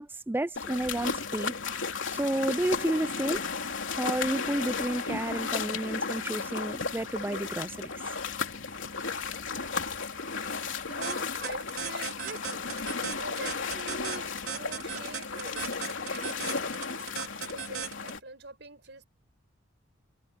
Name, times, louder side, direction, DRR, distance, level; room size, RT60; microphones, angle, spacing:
voice 1, 0.0-1.5 2.1-3.5 4.0-7.9, right 1 dB, 10° right, 0.3 m, -31 dB
sound 1, 0.6-18.2, left 5 dB, 65° left, 3.2 m, -34 dB
voice 2, 10.9-12.7 13.2-16.7 17.4-19.1, right 2 dB, 55° right, 7.7 m, -44 dB
sound 2, 11.0-18.2, right 8 dB, 80° right, 2.7 m, -36 dB
head